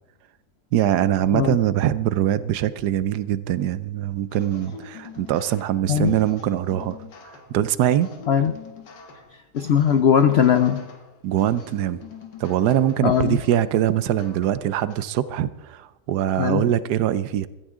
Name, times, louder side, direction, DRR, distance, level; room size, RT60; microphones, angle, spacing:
voice 1, 0.7-7.0 7.5-8.1 11.2-12.0 12.4-17.5, right 11 dB, 75° right, 16 dB, 1.2 m, -22 dB
sound 1, 4.3-15.0, left 6 dB, 90° left, 2.1 m, -44 dB
voice 2, 9.5-10.9 13.0-13.4 16.4-16.7, left 8 dB, 70° left, 9 dB, 0.6 m, -19 dB
15.5 x 13.5 x 3.7 m, 1.0 s
omnidirectional pair, 1.8 m